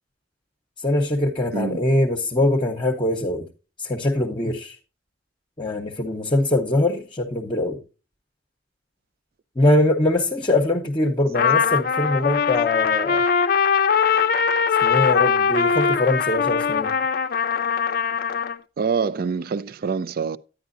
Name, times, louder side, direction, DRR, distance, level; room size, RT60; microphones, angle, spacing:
voice 1, 0.8-3.5 3.8-4.8 5.6-7.8 9.6-13.2 14.8-16.9, left 1 dB, 25° left, 0.8 m, -22 dB
Trumpet, 11.3-18.6, left 6 dB, 50° left, 0.5 m, -21 dB
voice 2, 18.8-20.4, right 5 dB, 50° right, 0.4 m, -25 dB
10.5 x 9.3 x 2.5 m
head